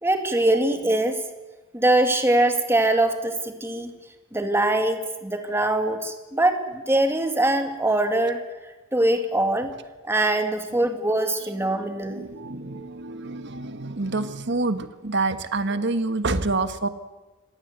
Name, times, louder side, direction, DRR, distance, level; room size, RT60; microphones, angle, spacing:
voice 1, 0.0-1.2 1.7-3.9 4.3-8.4 8.9-9.7 10.1-12.2, right 1 dB, 10° right, 6 dB, 2.1 m, -22 dB
voice 2, 11.7-16.9, right 3 dB, 55° right, 10 dB, 1.4 m, -27 dB
25.5 x 18.0 x 8.1 m, 1.2 s
head